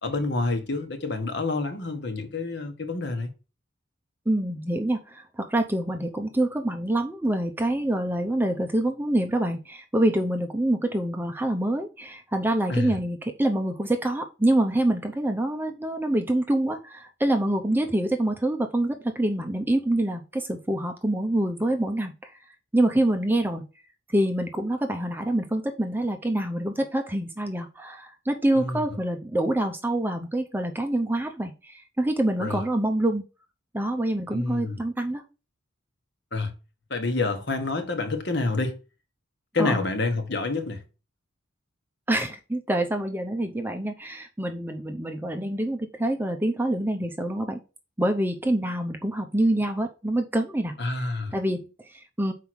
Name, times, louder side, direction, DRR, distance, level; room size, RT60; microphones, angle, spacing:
voice 1, 0.0-3.3 12.7-13.0 28.5-28.8 32.4-32.6 34.3-34.8 36.3-36.5 36.9-38.8 39.5-40.8 50.8-51.3, left 3 dB, 55° left, 1.3 m, -28 dB
voice 2, 4.3-22.4 22.7-23.7 24.1-33.2 33.7-35.2 39.6-39.8 42.1-47.6 48.0-50.8 51.3-52.3, right 1 dB, 10° right, 0.6 m, -26 dB
5.5 x 4.6 x 6.1 m
head